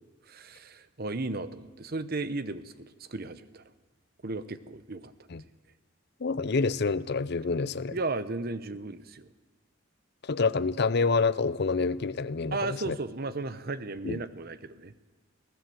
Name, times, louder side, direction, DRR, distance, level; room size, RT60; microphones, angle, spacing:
voice 1, 0.2-3.6 4.2-5.1 7.9-9.3 12.5-14.9, right 3 dB, 50° right, 13 dB, 0.9 m, -35 dB
voice 2, 6.2-8.0 10.2-13.0 14.0-14.2, left 4 dB, 55° left, 17 dB, 0.6 m, -27 dB
22.5 x 16.0 x 7.8 m, 1.3 s
head